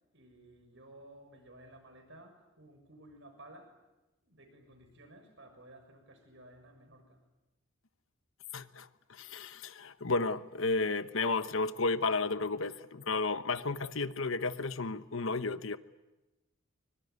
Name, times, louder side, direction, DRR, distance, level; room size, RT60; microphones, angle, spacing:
voice 1, 0.1-3.8 4.2-7.2, right 1 dB, 60° right, 6.7 m, -55 dB
voice 2, 8.5-15.8, left 3 dB, 75° left, 1.1 m, -33 dB
24.0 x 23.0 x 9.7 m
head